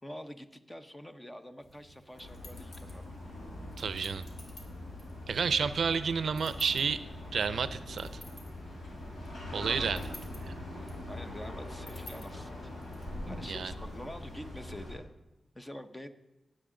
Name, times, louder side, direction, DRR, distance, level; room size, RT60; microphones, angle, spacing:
voice 1, 0.0-3.1 9.5-9.9 10.8-12.8 13.3-15.1 15.5-16.1, left 1 dB, 15° left, 9 dB, 0.7 m, -46 dB
sound 1, 1.6-14.1, left 1 dB, 60° left, 2.9 m, -53 dB
sound 2, 2.1-15.0, left 1 dB, 80° left, 4.4 m, -43 dB
voice 2, 3.8-4.2 5.3-7.0 7.3-8.1 9.5-10.1 13.5-13.7, right 6 dB, 70° right, 13 dB, 0.5 m, -30 dB
sound 3, 5.1-13.2, left 1 dB, 35° left, 2.9 m, -54 dB
18.5 x 7.9 x 3.8 m, 1.0 s
wide cardioid pair, 120°, 0 cm